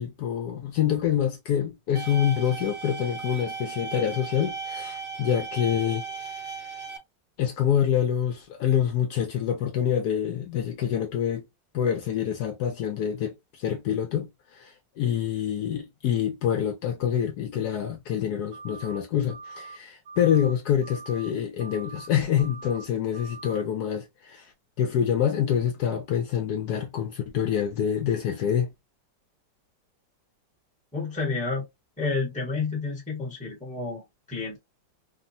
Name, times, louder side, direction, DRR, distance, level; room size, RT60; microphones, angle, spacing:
voice 1, 0.0-6.7 7.4-11.5 11.7-24.5 24.8-28.7, left 9 dB, 70° left, 1.0 m, -26 dB
sound 1, 2.0-7.0, right 5 dB, 85° right, 1.5 m, -36 dB
sound 2, 18.5-19.0 19.3-19.8 20.0-20.5 20.8-21.3 21.6-22.1 22.4-22.9 23.1-23.6, right 4 dB, 55° right, 0.7 m, -43 dB
voice 2, 30.9-31.6 32.0-34.6, left 4 dB, 5° left, 0.8 m, -30 dB
3.6 x 2.0 x 2.6 m
omnidirectional pair, 2.0 m